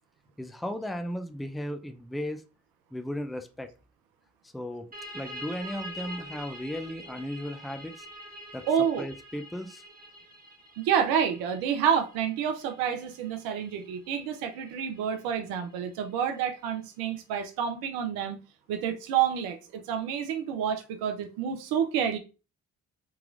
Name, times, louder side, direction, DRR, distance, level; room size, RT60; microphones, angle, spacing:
voice 1, 0.4-2.4 2.9-3.7 4.4-4.9 5.1-8.1 8.5-8.6 9.0-9.8, equal, ahead, 0.5 m, -35 dB
sound 1, 4.9-16.3, equal, 25° right, 1.4 m, -46 dB
voice 2, 8.7-9.1 10.8-18.4 18.7-22.2, right 8 dB, 80° right, 0.5 m, -28 dB
3.7 x 2.9 x 2.4 m
hypercardioid pair, 40°, 36 cm